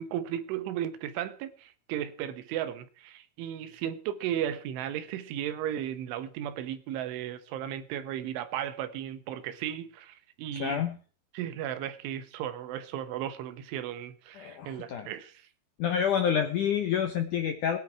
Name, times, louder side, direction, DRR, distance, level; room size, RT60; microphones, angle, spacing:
voice 1, 0.0-10.8 11.3-15.4, right 10 dB, 90° right, 3.7 m, -35 dB
voice 2, 10.6-11.0 14.4-15.1 15.8-17.8, left 8 dB, 75° left, 1.8 m, -28 dB
21.0 x 10.0 x 4.7 m
omnidirectional pair, 5.3 m